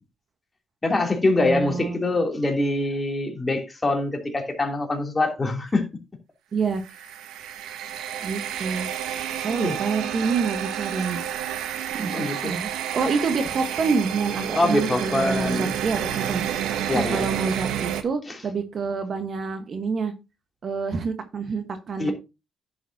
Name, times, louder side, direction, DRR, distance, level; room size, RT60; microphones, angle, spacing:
voice 1, 0.8-5.8 9.6-9.8 11.0-11.2 12.1-12.5 14.5-15.6 16.9-17.2 22.0-22.1, left 2 dB, 20° left, 3.0 m, -24 dB
voice 2, 1.4-2.0 6.5-6.8 8.2-8.9 9.3-11.2 11.9-20.1 20.6-22.1, right 5 dB, 50° right, 1.3 m, -27 dB
sound 1, 6.8-18.0, right 10 dB, 90° right, 0.9 m, -30 dB
10.5 x 7.1 x 2.8 m
cardioid pair, 90°, 0 cm